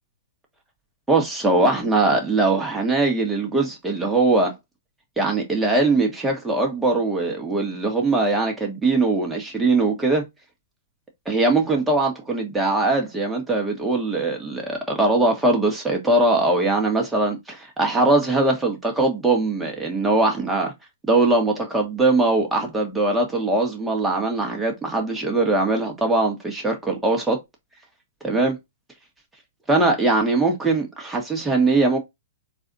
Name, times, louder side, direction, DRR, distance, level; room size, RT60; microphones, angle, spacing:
voice 1, 1.1-4.5 5.2-10.2 11.2-20.7 21.0-27.4 28.2-28.6 29.7-32.0, right 2 dB, 10° right, 1.5 m, -21 dB
3.9 x 2.7 x 4.0 m
hypercardioid pair, 120°, 0 cm